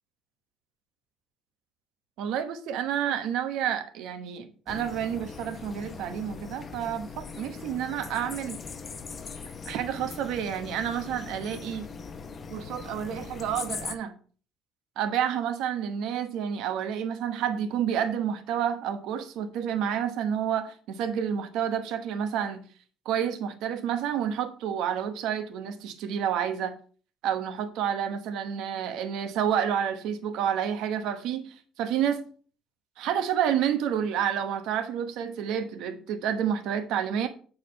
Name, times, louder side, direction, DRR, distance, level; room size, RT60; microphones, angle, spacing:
voice 1, 2.2-8.6 9.6-11.9 12.5-14.1 15.0-22.6 23.0-26.8 27.2-32.2 33.0-37.3, right 9 dB, 70° right, 1.2 m, -29 dB
sound 1, 4.7-14.0, left 5 dB, 25° left, 0.7 m, -40 dB
8.4 x 4.9 x 5.4 m
cardioid pair, 160°, 0 cm